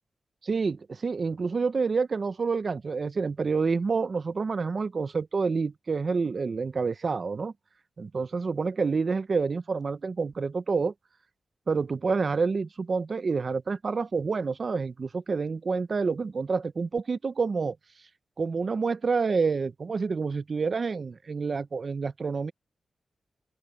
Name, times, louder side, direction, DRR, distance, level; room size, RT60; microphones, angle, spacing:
voice 1, 0.4-7.5 8.0-10.9 11.7-17.8 18.4-22.5, right 4 dB, 45° right, 0.6 m, -28 dB
open air
wide cardioid pair, 120°, 0 cm